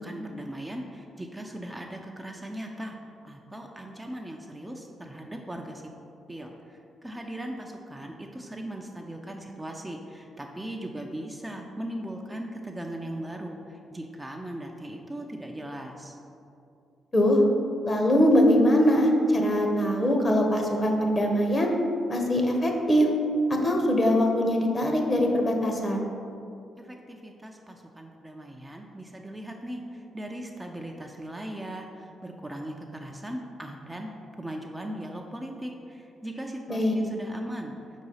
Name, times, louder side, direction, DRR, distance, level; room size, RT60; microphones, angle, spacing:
voice 1, 0.0-3.0 3.2-5.8 6.3-16.2 26.8-37.7, right 1 dB, 15° right, 1 dB, 0.6 m, -38 dB
voice 2, 17.9-21.7 22.1-23.1 23.5-26.0 36.7-37.0, equal, 30° left, 2 dB, 1.1 m, -22 dB
4.6 x 4.1 x 5.6 m, 2.6 s
supercardioid pair, 50°, 0 cm